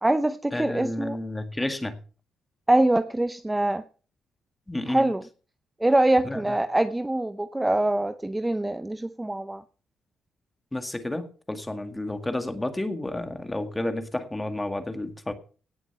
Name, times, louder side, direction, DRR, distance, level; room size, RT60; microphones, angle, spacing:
voice 1, 0.0-1.2 2.7-3.8 4.9-5.2 5.8-9.6, right 1 dB, 10° right, 11 dB, 0.7 m, -24 dB
voice 2, 0.5-2.0 4.7-5.1 6.2-6.6 10.7-15.3, left 1 dB, 10° left, 8 dB, 2.0 m, -31 dB
18.0 x 7.3 x 5.8 m, 0.39 s
cardioid pair, 110°, 0 cm